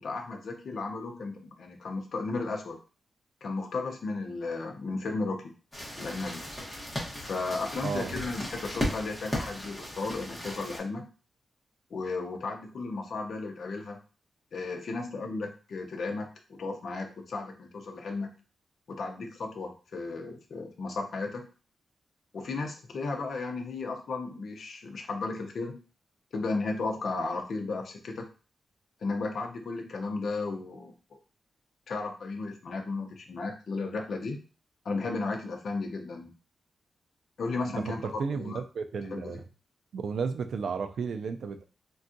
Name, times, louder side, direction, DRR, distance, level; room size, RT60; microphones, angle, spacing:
voice 1, 0.0-2.8 3.4-5.5 5.9-6.4 7.2-11.1 11.9-14.0 14.5-18.3 18.9-21.5 22.3-25.8 26.3-28.3 29.0-30.9 31.9-34.4 34.8-36.3 37.4-38.6 39.1-39.4, left 3 dB, 60° left, 3 dB, 0.6 m, -34 dB
sound 1, 5.7-10.8, left 1 dB, 10° left, 1.0 m, -36 dB
voice 2, 7.8-8.2 37.6-39.4 39.9-41.6, right 5 dB, 75° right, 7 dB, 0.3 m, -33 dB
3.5 x 2.3 x 2.6 m, 0.36 s
wide cardioid pair, 155°, 0 cm